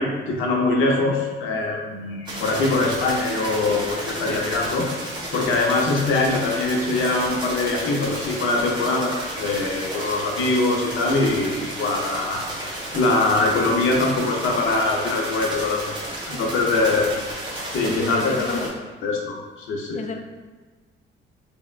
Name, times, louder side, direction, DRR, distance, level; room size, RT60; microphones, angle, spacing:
voice 1, 0.0-4.9 5.3-16.0 16.3-17.1 17.6-18.7 19.0-20.0, left 2 dB, 85° left, 0 dB, 0.7 m, -23 dB
sound 1, 2.3-18.7, right 1 dB, 20° right, 1.3 m, -32 dB
voice 2, 17.8-18.7 19.9-20.2, left 4 dB, 35° left, 6 dB, 0.4 m, -30 dB
3.5 x 3.4 x 2.4 m, 1.4 s
cardioid pair, 90°, 20 cm